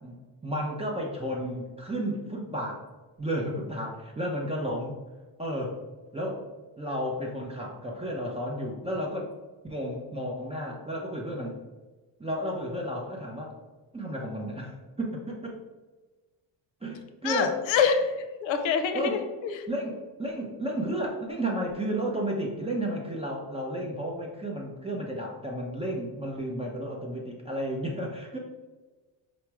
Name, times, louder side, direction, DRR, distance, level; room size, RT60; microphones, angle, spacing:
voice 1, 0.0-2.8 3.2-5.0 5.4-5.8 6.1-6.5 6.8-9.3 9.6-11.6 12.2-13.5 13.9-15.5 16.8-17.6 18.9-19.2 19.7-28.4, equal, 15° right, -2 dB, 0.5 m, -32 dB
voice 2, 17.2-18.1 18.4-19.6, left 6 dB, 85° left, 6 dB, 0.6 m, -26 dB
4.4 x 2.0 x 4.6 m, 1.2 s
cardioid pair, 125°, 45 cm